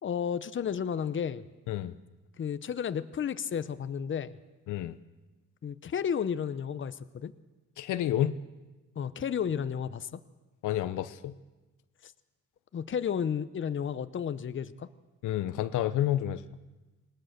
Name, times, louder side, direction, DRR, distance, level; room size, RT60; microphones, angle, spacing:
voice 1, 0.0-1.4 2.4-4.4 5.6-7.3 9.0-10.2 12.0-12.1 12.7-14.9, left 7 dB, 40° left, 13 dB, 0.9 m, -32 dB
voice 2, 7.8-8.3 10.6-11.3 15.2-16.4, left 12 dB, 80° left, 13 dB, 0.9 m, -29 dB
20.0 x 19.5 x 6.7 m, 1.2 s
cardioid pair, 90°, 30 cm